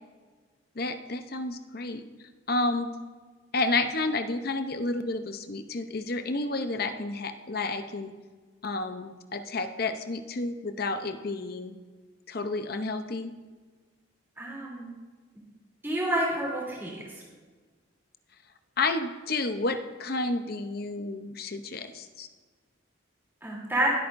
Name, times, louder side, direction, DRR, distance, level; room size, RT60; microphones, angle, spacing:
voice 1, 0.8-2.1 2.5-2.9 3.5-8.1 8.6-11.8 12.3-13.3 18.8-22.3, left 2 dB, 50° left, 8 dB, 0.7 m, -30 dB
voice 2, 14.4-14.9 15.8-17.0 23.4-23.9, right 1 dB, 10° right, -4 dB, 3.1 m, -28 dB
20.0 x 8.5 x 2.6 m, 1.4 s
head